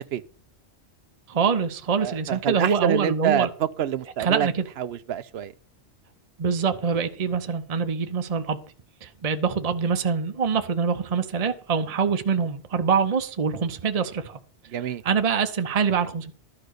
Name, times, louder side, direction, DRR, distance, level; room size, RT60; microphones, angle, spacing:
voice 1, 1.3-3.5 4.2-4.7 6.4-8.6 9.0-14.4 15.0-16.3, right 6 dB, 40° right, 0.8 m, -24 dB
voice 2, 2.0-4.5 4.8-5.5 14.7-15.0, right 10 dB, 70° right, 0.9 m, -27 dB
12.0 x 5.2 x 6.5 m
omnidirectional pair, 1.1 m